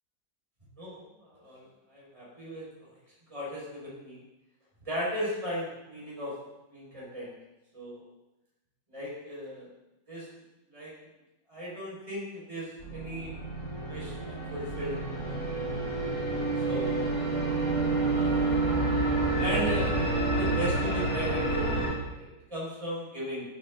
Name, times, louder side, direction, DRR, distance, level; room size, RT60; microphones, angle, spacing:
voice 1, 0.8-2.7 3.3-4.2 4.8-6.3 6.7-7.3 7.7-8.0 8.9-9.7 10.1-10.2 10.7-10.9 11.5-13.4 13.9-15.0 15.2-15.6 16.7-17.1 18.1-18.6 19.4-19.9 20.3-23.4, equal, 15° right, -7 dB, 6.4 m, -37 dB
sound 1, 12.8-21.9, right 2 dB, 50° left, 4.6 m, -28 dB
16.5 x 12.5 x 4.1 m, 0.97 s
omnidirectional pair, 2.0 m